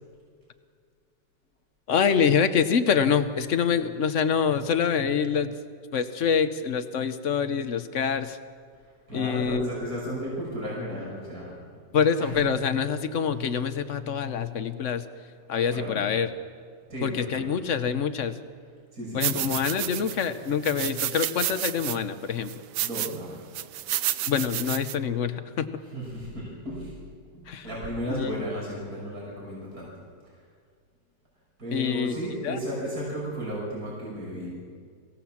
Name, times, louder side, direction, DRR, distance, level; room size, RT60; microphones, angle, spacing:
voice 1, 1.9-5.5 5.9-8.4 9.1-9.7 11.9-15.0 15.5-16.3 17.0-18.4 19.1-22.6 24.3-25.7 27.5-27.7 28.1-28.4 31.7-32.1 32.4-32.6, left 7 dB, 50° left, 10 dB, 1.1 m, -25 dB
voice 2, 9.1-11.6 12.2-12.5 15.7-16.0 16.9-17.5 18.9-19.9 22.8-23.4 25.9-27.0 27.3-29.9 31.6-34.7, equal, 50° right, -5 dB, 6.3 m, -34 dB
sound 1, 19.2-20.3 20.6-22.0 22.5-23.2 23.5-25.0, right 13 dB, 70° right, 1.3 m, -30 dB
24.0 x 17.0 x 7.4 m, 2.1 s
omnidirectional pair, 2.0 m